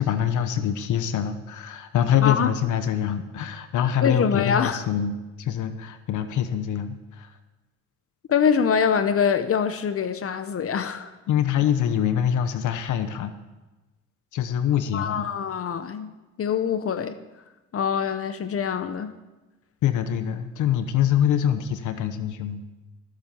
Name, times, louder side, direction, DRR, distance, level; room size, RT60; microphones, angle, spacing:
voice 1, 0.0-7.3 11.3-13.3 14.3-15.3 19.8-22.6, left 9 dB, 75° left, 10 dB, 1.0 m, -24 dB
voice 2, 4.0-4.8 8.3-11.1 14.9-16.1 16.4-17.2 17.7-19.1, left 7 dB, 50° left, 10 dB, 0.8 m, -24 dB
14.5 x 7.9 x 7.0 m, 1.1 s
cardioid pair, 90°, 30 cm